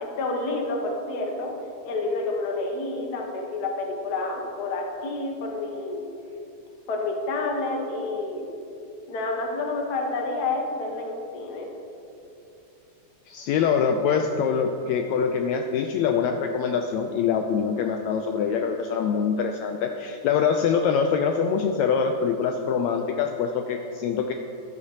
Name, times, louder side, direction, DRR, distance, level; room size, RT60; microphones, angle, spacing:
voice 1, 0.0-1.5 1.8-6.0 6.9-8.5 9.1-11.7, left 3 dB, 65° left, 1 dB, 0.9 m, -29 dB
voice 2, 13.3-24.3, left 6 dB, 80° left, 4 dB, 1.6 m, -24 dB
13.0 x 11.5 x 2.9 m, 2.8 s
omnidirectional pair, 3.6 m